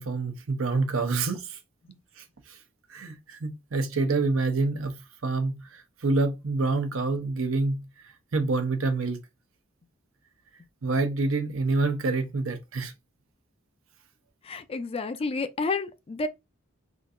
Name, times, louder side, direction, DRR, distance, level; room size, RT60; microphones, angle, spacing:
voice 1, 0.0-1.6 2.2-2.6 2.9-7.8 8.3-9.2 10.8-12.9, right 3 dB, 75° right, 0.8 m, -27 dB
voice 2, 14.4-16.3, left 3 dB, 30° left, 0.4 m, -30 dB
3.6 x 2.7 x 2.5 m
head